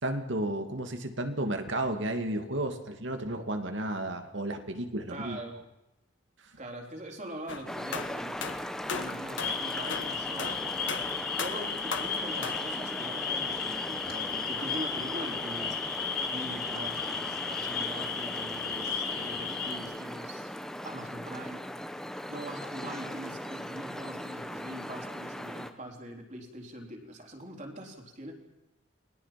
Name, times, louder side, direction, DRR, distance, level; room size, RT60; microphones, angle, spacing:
voice 1, 0.0-5.4, right 1 dB, 70° right, 6 dB, 2.4 m, -32 dB
voice 2, 5.1-5.6 6.6-8.4 8.9-10.7 11.4-20.5 20.8-21.7 22.3-28.3, right 1 dB, 35° right, 1 dB, 3.8 m, -42 dB
sound 1, 7.5-12.6, left 5 dB, 70° left, 1.6 m, -36 dB
sound 2, 7.7-25.7, equal, 5° left, 1.1 m, -39 dB
sound 3, 9.4-19.8, left 6 dB, 50° left, 4.1 m, -34 dB
29.5 x 21.0 x 6.0 m, 0.95 s
head